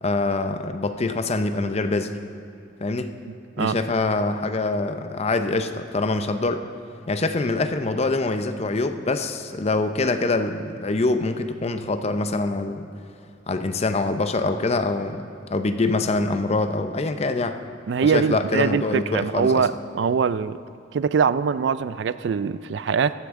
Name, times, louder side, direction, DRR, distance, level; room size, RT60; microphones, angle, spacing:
voice 1, 0.0-2.1 2.8-3.1 3.6-6.7 7.1-12.9 13.5-15.2 15.5-17.6 18.0-19.7, left 2 dB, 35° left, 8 dB, 0.6 m, -24 dB
voice 2, 17.9-20.6 20.9-23.1, right 6 dB, 65° right, 15 dB, 0.3 m, -22 dB
15.5 x 13.0 x 3.7 m, 2.7 s
head